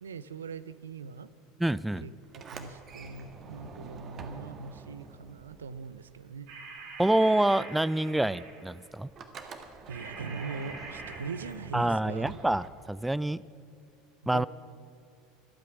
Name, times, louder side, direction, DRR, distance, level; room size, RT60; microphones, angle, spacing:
voice 1, 0.0-1.3 2.0-6.5 9.9-12.4 14.2-14.5, right 5 dB, 80° right, 16 dB, 0.5 m, -41 dB
voice 2, 1.6-2.1 7.0-9.1 11.7-13.4 14.3-14.5, right 1 dB, 5° right, 20 dB, 0.3 m, -27 dB
Sliding door, 2.2-6.5 6.8-13.2, right 4 dB, 35° right, 1.5 m, -47 dB
sound 1, 6.5-8.8 9.9-11.5, right 3 dB, 60° right, 2.7 m, -45 dB
24.5 x 9.0 x 6.0 m, 2.5 s
figure-of-eight pair, 75°, 0 cm